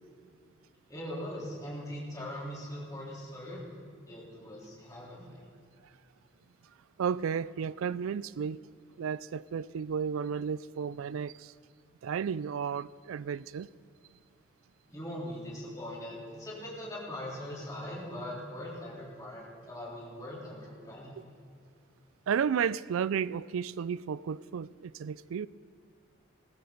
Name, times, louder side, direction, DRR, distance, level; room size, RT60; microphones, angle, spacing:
voice 1, 0.9-3.6 4.1-5.4 14.9-21.2, left 1 dB, 15° left, 3.6 m, -41 dB
voice 2, 7.0-8.6 9.0-11.5 12.0-13.7 22.3-25.5, right 7 dB, 85° right, 0.4 m, -33 dB
19.0 x 15.5 x 4.0 m
head